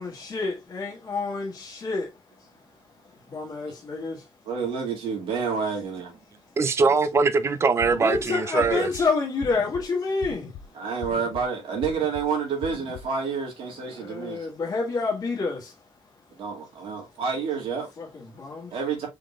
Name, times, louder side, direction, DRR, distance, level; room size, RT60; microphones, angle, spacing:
voice 1, 0.0-2.5 3.0-4.3 7.9-10.7 13.9-15.8 18.0-18.8, left 4 dB, 35° left, 1.6 m, -29 dB
voice 2, 4.5-6.2 10.7-14.5 16.4-17.9 18.7-19.1, right 6 dB, 75° right, 2.1 m, -29 dB
voice 3, 6.6-8.9, right 4 dB, 30° right, 0.4 m, -22 dB
sound 1, 7.8-8.2 8.6-9.0 9.4-9.8 10.2-10.6 11.0-11.4 11.8-12.2 12.6-13.0, left 7 dB, 85° left, 0.7 m, -40 dB
5.0 x 3.9 x 2.3 m
wide cardioid pair, 175°, 9 cm